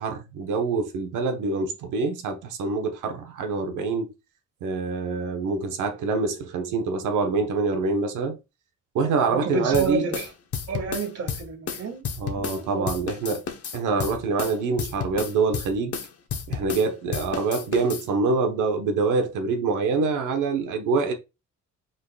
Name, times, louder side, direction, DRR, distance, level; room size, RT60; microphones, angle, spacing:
voice 1, 0.0-4.1 4.6-8.4 8.9-10.1 12.2-13.5 13.7-16.0 16.5-21.1, right 4 dB, 85° right, 1.1 m, -25 dB
voice 2, 9.3-10.3 10.7-12.1 12.4-12.9, right 5 dB, 55° right, 1.6 m, -30 dB
sound 1, 9.7-12.6 12.9-16.9 17.1-18.1, left 6 dB, 50° left, 0.9 m, -32 dB
5.1 x 4.2 x 2.3 m
cardioid pair, 90°, 30 cm